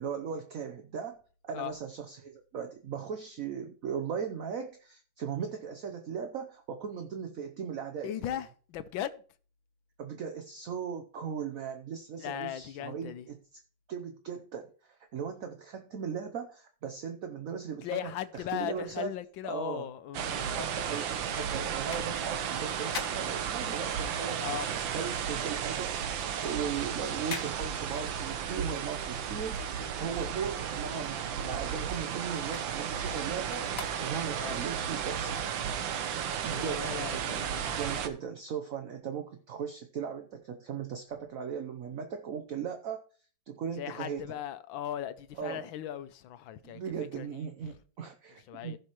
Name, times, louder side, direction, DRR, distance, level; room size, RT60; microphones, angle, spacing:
voice 1, 0.0-8.3 10.0-13.4 13.9-19.1 19.4-19.9 20.5-35.4 36.4-43.0 43.5-44.4 45.4-45.6 46.6-48.8, right 7 dB, 55° right, 1.1 m, -38 dB
voice 2, 8.0-9.2 12.2-13.3 17.8-20.6 24.4-24.7 34.4-34.6 36.4-38.0 43.8-46.8 47.1-47.7 48.5-48.8, left 11 dB, 80° left, 1.5 m, -38 dB
sound 1, 20.1-38.1, right 8 dB, 80° right, 1.7 m, -34 dB
sound 2, 20.5-24.1 24.5-30.4 30.8-34.5 35.1-35.2, left 5 dB, 50° left, 1.5 m, -46 dB
15.5 x 6.5 x 3.1 m
omnidirectional pair, 2.1 m